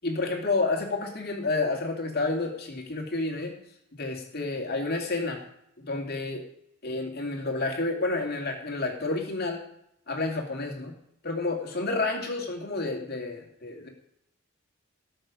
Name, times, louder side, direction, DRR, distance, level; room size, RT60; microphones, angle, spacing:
voice 1, 0.0-3.5 3.9-5.4 5.8-6.4 6.8-9.6 10.1-10.9 11.2-13.9, left 3 dB, 45° left, 2 dB, 2.5 m, -30 dB
18.0 x 6.6 x 5.2 m, 0.75 s
head